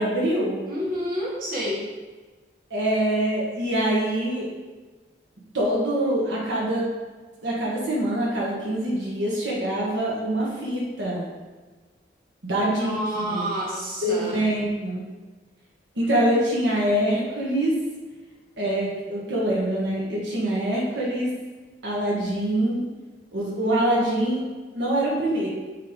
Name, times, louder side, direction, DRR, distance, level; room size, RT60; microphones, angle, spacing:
voice 1, 0.0-0.6 2.7-4.5 5.5-6.9 7.4-11.2 12.4-13.5 14.0-15.0 15.9-17.8 18.6-21.3 21.8-22.8 23.3-24.4 24.7-25.5, right 1 dB, 80° right, -5 dB, 1.3 m, -24 dB
voice 2, 0.7-1.9 12.6-14.4, equal, 55° right, -5 dB, 1.6 m, -29 dB
8.6 x 3.2 x 3.7 m, 1.3 s
head